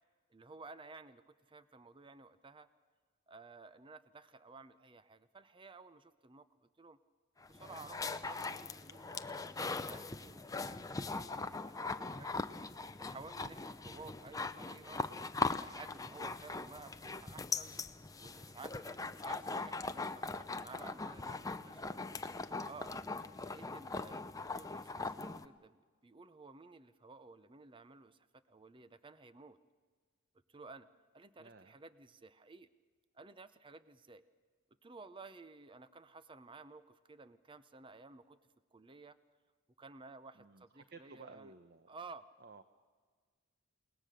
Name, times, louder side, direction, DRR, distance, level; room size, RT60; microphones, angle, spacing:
voice 1, 0.3-2.7 3.3-7.0 7.5-12.3 13.0-15.0 15.6-17.8 18.2-22.0 22.6-22.9 23.4-28.2 28.5-29.6 30.5-30.9 31.1-32.7 33.1-34.2 34.8-38.4 38.7-39.2 39.8-41.5 41.9-42.2, right 3 dB, 25° right, 13 dB, 0.7 m, -54 dB
sound 1, 7.4-25.4, left 3 dB, 15° left, 0.6 m, -41 dB
voice 2, 13.9-14.3 21.5-22.1 31.4-31.8 40.3-41.9 42.4-42.6, right 4 dB, 50° right, 9 dB, 0.9 m, -57 dB
29.0 x 19.0 x 6.7 m, 1.5 s
head